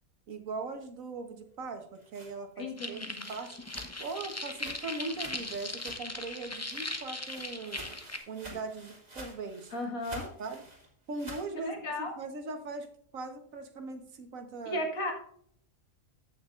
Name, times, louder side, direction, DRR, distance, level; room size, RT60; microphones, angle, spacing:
voice 1, 0.3-1.9 2.1-8.0 8.3-9.7 10.4-10.6 11.1-14.8, right 3 dB, 75° right, 6 dB, 1.6 m, -40 dB
sound 1, 1.7-6.2 6.5-11.5, right 1 dB, 30° right, 2.2 m, -50 dB
voice 2, 2.6-3.2 8.5-8.6 9.7-10.3 11.7-12.2 14.7-15.1, left 1 dB, 85° left, 2 dB, 2.2 m, -35 dB
sound 2, 2.8-8.2, left 2 dB, 15° left, 0.7 m, -39 dB
14.5 x 6.1 x 2.5 m, 0.64 s
omnidirectional pair, 1.4 m